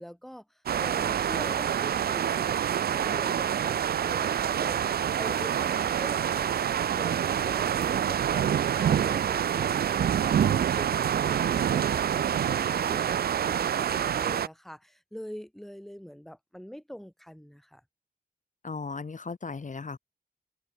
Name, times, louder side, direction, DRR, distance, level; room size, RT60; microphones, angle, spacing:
voice 1, 0.0-2.6 2.9-6.6 6.9-17.8, equal, ahead, 3.4 m, -44 dB
sound 1, 0.7-14.5, right 9 dB, 75° right, 0.4 m, -26 dB
voice 2, 18.6-20.0, left 4 dB, 50° left, 5.5 m, -36 dB
wide cardioid pair, 125°, 16 cm